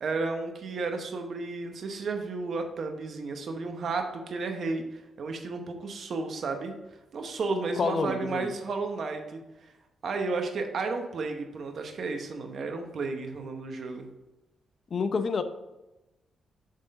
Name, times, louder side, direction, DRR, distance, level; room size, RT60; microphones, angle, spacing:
voice 1, 0.0-6.8 7.1-9.7 10.0-14.1, right 3 dB, 60° right, 5 dB, 1.0 m, -33 dB
voice 2, 7.8-8.5 14.9-15.4, left 4 dB, 50° left, 9 dB, 0.7 m, -28 dB
7.5 x 3.7 x 5.4 m, 1.0 s
cardioid pair, 80°, 0 cm